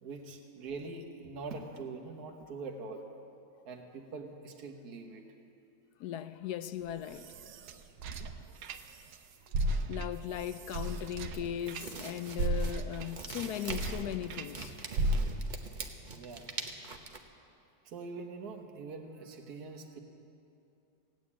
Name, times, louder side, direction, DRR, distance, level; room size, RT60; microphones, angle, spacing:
voice 1, 0.0-3.0 3.6-5.2 16.1-16.4 17.8-20.0, right 4 dB, 60° right, 1.7 m, -43 dB
voice 2, 6.0-7.3 9.9-14.7, left 10 dB, 70° left, 1.0 m, -38 dB
sound 1, 6.8-9.2 9.5-14.5 15.0-15.6, right 1 dB, 85° right, 1.4 m, -35 dB
sound 2, 11.0-17.2, right 4 dB, 35° right, 0.8 m, -44 dB
16.5 x 9.4 x 8.6 m
omnidirectional pair, 1.9 m